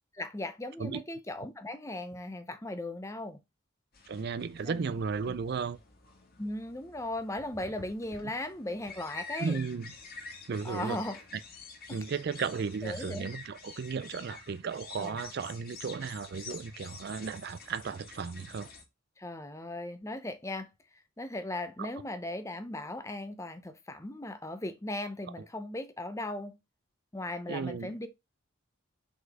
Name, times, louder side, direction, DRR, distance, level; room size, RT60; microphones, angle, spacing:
voice 1, 0.1-3.4 4.6-4.8 5.3-5.4 6.4-9.6 10.6-11.2 11.9-12.0 12.8-13.3 15.0-15.2 19.2-20.7 21.2-26.6 27.1-28.1, left 1 dB, 15° left, 0.7 m, -37 dB
sound 1, 3.9-18.8, left 4 dB, 50° left, 1.7 m, -48 dB
voice 2, 4.1-5.8 9.4-9.9 10.5-11.0 11.3-11.4 11.9-18.7 21.8-21.9 27.5-27.9, right 5 dB, 50° right, 0.4 m, -35 dB
5.1 x 4.2 x 4.8 m
head